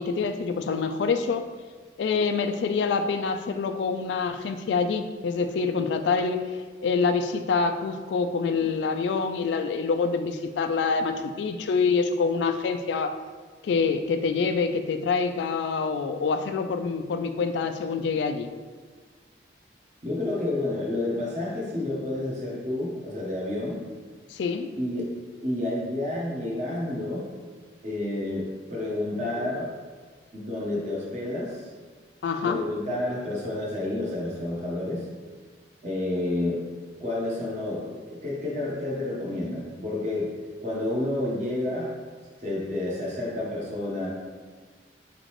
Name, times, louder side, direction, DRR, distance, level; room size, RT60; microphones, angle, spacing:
voice 1, 0.0-1.4 2.0-6.5 6.8-13.2 13.6-18.5 24.3-24.7 32.2-32.6, left 5 dB, 70° left, 9 dB, 0.3 m, -26 dB
voice 2, 20.0-23.8 24.8-25.1 25.4-27.2 27.8-29.7 30.3-31.7 32.4-35.0 35.8-36.6 37.0-40.3 40.6-41.9 42.4-44.1, left 1 dB, 40° right, -4 dB, 1.1 m, -30 dB
4.2 x 3.8 x 3.2 m, 1.4 s
head